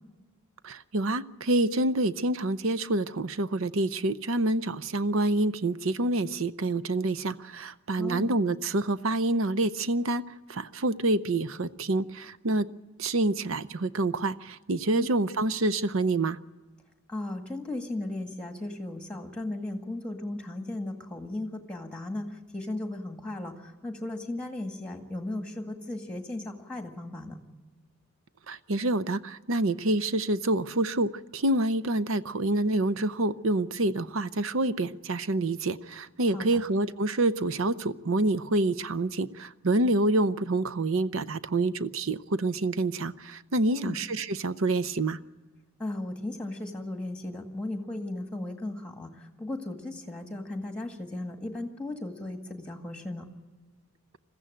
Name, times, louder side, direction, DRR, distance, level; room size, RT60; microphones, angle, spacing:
voice 1, 0.6-10.2 10.5-12.7 13.0-16.4 28.5-45.2, right 2 dB, 65° right, 15 dB, 0.7 m, -27 dB
voice 2, 8.0-8.3 14.9-15.1 17.1-27.4 36.3-36.6 43.6-44.0 45.8-53.3, left 2 dB, 5° left, 5 dB, 1.9 m, -36 dB
21.5 x 15.0 x 9.1 m, 1.3 s
head